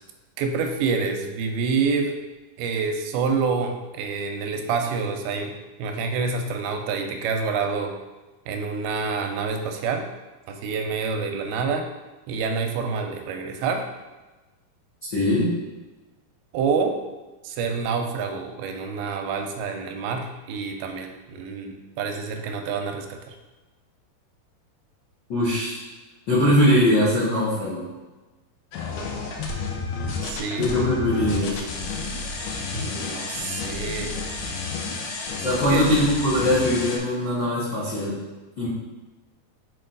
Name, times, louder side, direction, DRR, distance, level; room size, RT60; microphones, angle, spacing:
voice 1, 0.4-2.2 2.6-5.5 5.8-8.0 8.5-10.0 10.5-11.9 12.3-13.8 16.5-17.0 17.4-23.4 30.2-30.7 32.7-34.1 35.5-35.9, right 5 dB, 85° right, 4 dB, 2.6 m, -27 dB
voice 2, 15.1-15.5 25.3-25.8 26.3-27.9 30.3-31.6 35.4-38.2 38.6-38.7, left 1 dB, 65° left, -9 dB, 1.1 m, -21 dB
sound 1, 28.7-37.0, left 4 dB, 85° left, 2.8 m, -31 dB
6.5 x 4.6 x 3.9 m, 1.2 s
omnidirectional pair, 4.4 m